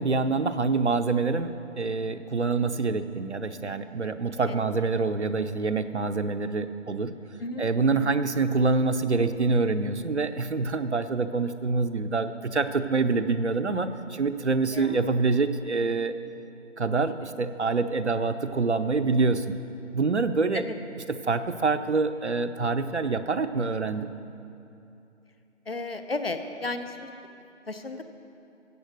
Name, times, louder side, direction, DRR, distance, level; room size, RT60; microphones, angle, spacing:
voice 1, 0.0-7.1 7.6-16.1 16.8-19.6 19.9-20.6 21.1-24.1, right 4 dB, 60° right, 9 dB, 0.8 m, -26 dB
voice 2, 7.4-8.2 14.4-15.0 20.5-20.7 25.7-27.1 27.7-28.0, left 2 dB, 50° left, 8 dB, 0.9 m, -34 dB
15.0 x 8.5 x 6.5 m, 2.7 s
figure-of-eight pair, 180°, 38 cm